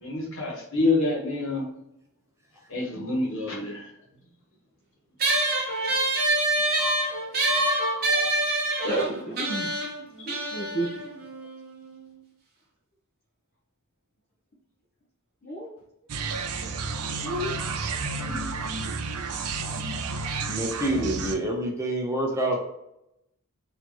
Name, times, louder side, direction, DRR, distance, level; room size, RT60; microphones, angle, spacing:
voice 1, 0.0-1.7 2.7-3.8 6.8-7.1 7.4-8.3, left 2 dB, 60° left, -2 dB, 1.3 m, -27 dB
sound 1, 5.2-12.0, right 2 dB, 45° right, 1.0 m, -26 dB
voice 2, 8.8-9.7 10.3-10.9 15.4-15.7 16.9-17.6 18.2-18.5, right 1 dB, 40° left, -3 dB, 0.7 m, -31 dB
sound 2, 16.1-21.4, right 4 dB, 90° right, 0.6 m, -31 dB
voice 3, 20.5-22.6, right 1 dB, 15° right, -1 dB, 0.7 m, -27 dB
4.1 x 2.8 x 3.0 m, 0.84 s
head